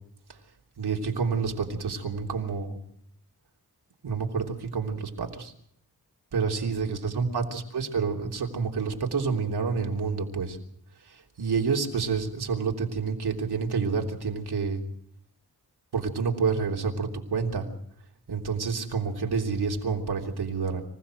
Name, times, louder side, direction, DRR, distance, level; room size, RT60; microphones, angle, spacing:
voice 1, 0.8-2.8 4.0-5.5 6.3-10.6 11.1-14.8 15.9-17.7 18.3-20.8, right 5 dB, 85° right, 3 dB, 3.4 m, -28 dB
26.5 x 16.0 x 7.8 m, 0.69 s
cardioid pair, 70°, 38 cm